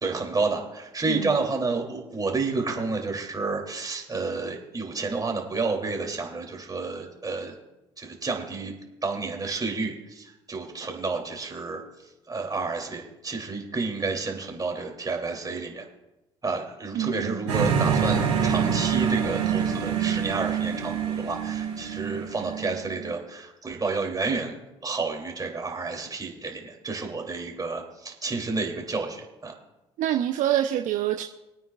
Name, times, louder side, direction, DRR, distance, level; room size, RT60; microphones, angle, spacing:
voice 1, 0.0-7.5 8.0-8.7 9.0-11.8 12.3-15.9 16.4-24.5 24.8-29.5, right 3 dB, 25° right, 1 dB, 3.1 m, -30 dB
voice 2, 16.9-17.4 30.0-31.2, right 11 dB, 60° right, 6 dB, 0.7 m, -26 dB
sound 1, 17.5-23.1, right 7 dB, 85° right, 2.3 m, -26 dB
25.0 x 9.1 x 2.5 m, 0.97 s
hypercardioid pair, 55°, 15 cm